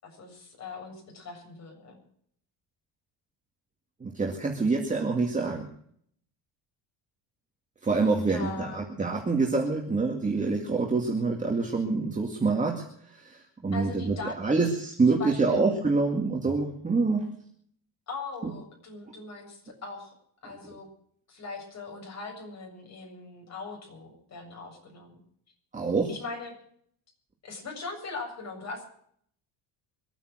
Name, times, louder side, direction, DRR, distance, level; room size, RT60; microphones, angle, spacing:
voice 1, 0.0-2.0 8.3-8.8 13.7-14.7 15.1-15.6 18.1-20.1 20.4-20.9 21.3-25.2 26.1-26.5 27.4-28.8, left 3 dB, 35° left, 1 dB, 7.4 m, -40 dB
voice 2, 4.0-5.7 7.8-12.9 13.1-13.4 13.6-17.3 18.4-18.5 25.7-26.1, right 3 dB, 15° right, 1 dB, 2.3 m, -26 dB
24.5 x 9.2 x 6.3 m, 0.65 s
cardioid pair, 140°, 44 cm